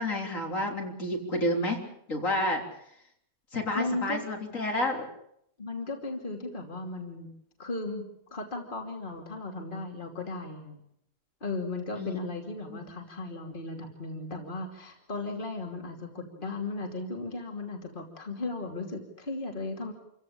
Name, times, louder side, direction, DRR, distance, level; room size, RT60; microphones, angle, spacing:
voice 1, 0.0-1.8 2.1-2.6 3.5-5.1 12.0-12.2 12.7-12.8, left 1 dB, 65° left, 2 dB, 4.0 m, -30 dB
voice 2, 3.7-4.2 5.6-7.3 7.6-8.0 8.3-10.8 11.4-19.9, left 2 dB, 35° left, 3 dB, 3.0 m, -36 dB
27.5 x 16.0 x 8.7 m, 0.74 s
omnidirectional pair, 1.5 m